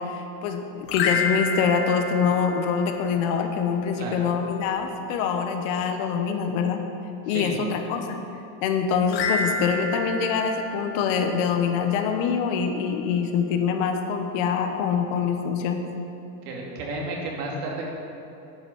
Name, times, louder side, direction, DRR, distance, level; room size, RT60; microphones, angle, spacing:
voice 1, 0.0-6.8 7.3-8.2 8.6-15.8, left 6 dB, 50° left, 5 dB, 1.1 m, -25 dB
sound 1, 0.8-3.3 9.1-11.7, left 3 dB, 80° left, 1.7 m, -29 dB
voice 2, 4.0-4.3 7.3-7.5 16.4-17.8, right 2 dB, 70° right, -2 dB, 2.7 m, -32 dB
10.5 x 5.9 x 7.0 m, 2.8 s
supercardioid pair, 140°, 50 cm